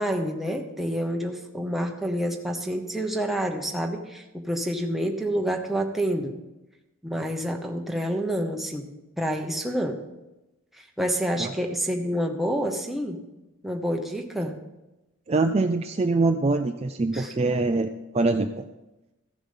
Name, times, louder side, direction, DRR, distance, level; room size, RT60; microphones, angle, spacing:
voice 1, 0.0-6.3 7.0-8.9 9.2-10.0 11.0-13.2 13.6-14.5 17.1-17.3, equal, ahead, 2 dB, 0.9 m, -28 dB
voice 2, 15.3-18.7, right 3 dB, 30° right, 6 dB, 0.4 m, -24 dB
14.5 x 7.0 x 5.5 m, 1.0 s
head